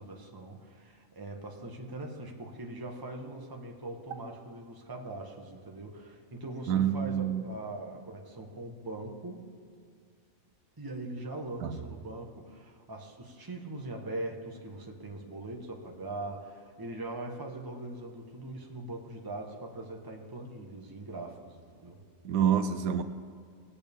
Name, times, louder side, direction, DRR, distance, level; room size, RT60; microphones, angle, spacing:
voice 1, 0.0-9.4 10.8-22.0, right 2 dB, 15° right, 1.1 m, -41 dB
voice 2, 6.7-7.4 11.6-11.8 22.2-23.0, right 9 dB, 80° right, 1.1 m, -27 dB
20.0 x 8.4 x 3.5 m
omnidirectional pair, 1.5 m